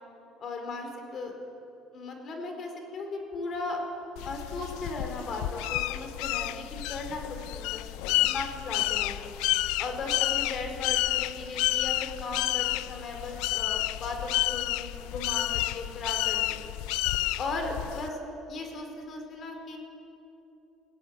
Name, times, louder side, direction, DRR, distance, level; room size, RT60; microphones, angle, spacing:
voice 1, 0.4-1.3 1.9-3.8 4.2-9.3 9.8-16.6 17.4-18.2 18.5-19.8, left 3 dB, 40° left, 4 dB, 4.4 m, -37 dB
sound 1, 4.2-18.1, left 17 dB, 90° left, 0.6 m, -30 dB
19.0 x 18.5 x 9.6 m, 2.9 s
cardioid pair, 140°, 0 cm